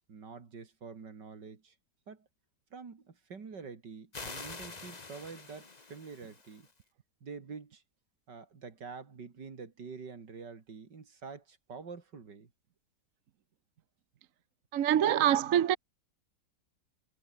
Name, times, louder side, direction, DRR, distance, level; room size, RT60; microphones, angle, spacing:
voice 1, 0.1-1.7 2.1-2.3 2.7-6.7 7.2-7.8 8.3-12.5, right 5 dB, 75° right, 3.3 m, -47 dB
sound 1, 4.1-6.7, left 4 dB, 25° left, 1.5 m, -46 dB
voice 2, 14.7-15.8, right 10 dB, 55° right, 1.1 m, -25 dB
omnidirectional pair, 1.9 m